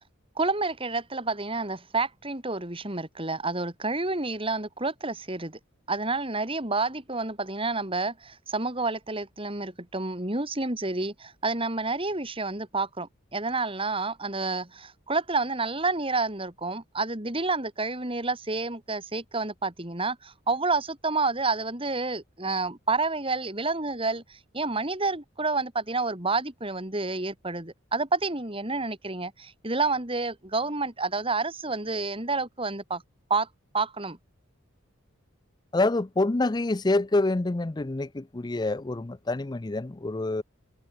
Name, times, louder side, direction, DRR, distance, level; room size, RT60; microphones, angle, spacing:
voice 1, 0.4-5.6 5.9-33.0 33.3-33.5 33.7-34.2, right 3 dB, 25° right, 3.8 m, -29 dB
voice 2, 35.7-40.4, left 2 dB, 20° left, 0.5 m, -26 dB
head